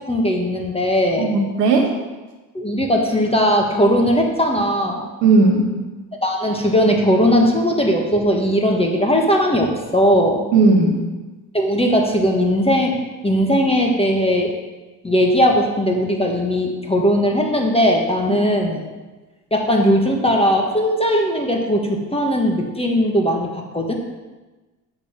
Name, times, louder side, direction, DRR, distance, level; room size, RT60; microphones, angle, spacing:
voice 1, 0.0-1.3 2.5-5.1 6.2-10.5 11.5-14.5 15.0-18.8 19.5-23.9, equal, 10° left, 1 dB, 1.4 m, -18 dB
voice 2, 1.2-1.9 5.2-5.6 10.5-11.0, right 3 dB, 90° right, 2 dB, 1.5 m, -15 dB
8.2 x 5.6 x 5.9 m, 1.2 s
hypercardioid pair, 70°, 47 cm